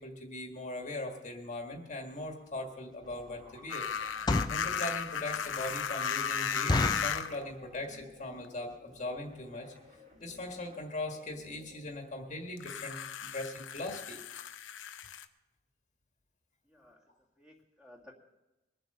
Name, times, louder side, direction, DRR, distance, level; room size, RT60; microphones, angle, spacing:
voice 1, 0.0-3.9 4.5-9.7 10.2-14.2, left 2 dB, 40° left, 3 dB, 1.6 m, -40 dB
sound 1, 2.5-2.6 3.1-3.3 4.0-4.7 5.2-5.3 5.7-5.8 6.1-6.2 6.7-7.2 7.8-8.1 8.3-8.4 8.7-8.9 9.5-9.6 9.8-10.0 10.3-10.4 10.6-10.7, left 2 dB, 20° left, 0.5 m, -30 dB
sound 2, 3.0-12.5, left 1 dB, 45° right, 3.2 m, -57 dB
sound 3, 3.7-7.4 8.4-8.5 12.6-15.2, left 7 dB, 80° left, 0.8 m, -35 dB
voice 2, 16.7-17.0 17.4-18.1, left 1 dB, 5° right, -1 dB, 2.0 m, -56 dB
22.0 x 7.7 x 5.5 m, 0.99 s
head